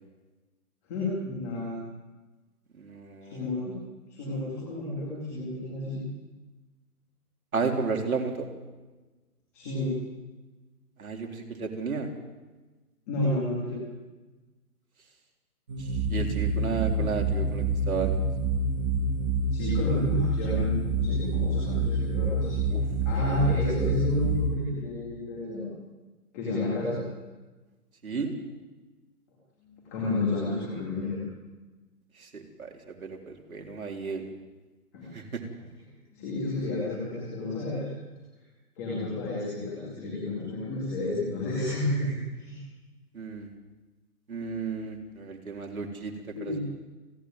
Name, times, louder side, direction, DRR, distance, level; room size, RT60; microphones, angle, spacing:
voice 1, 0.8-1.7 3.2-3.8 4.1-6.0 9.5-9.9 13.1-13.8 19.5-22.6 23.0-25.7 26.3-27.0 29.6-31.2 34.9-35.1 36.1-37.9 38.8-42.6 46.3-46.6, left 2 dB, 10° left, -6 dB, 2.2 m, -31 dB
voice 2, 2.8-3.5 7.5-8.5 11.0-12.1 15.8-18.1 22.7-22.9 23.1-23.3 23.6-23.8 28.0-28.3 32.2-34.3 35.1-35.4 43.1-43.5 44.3-46.1 46.4-46.6, right 5 dB, 60° right, 1 dB, 3.8 m, -33 dB
sound 1, 15.7-24.5, right 2 dB, 10° right, 1.5 m, -27 dB
30.0 x 10.5 x 9.0 m, 1.2 s
hypercardioid pair, 180°, 47 cm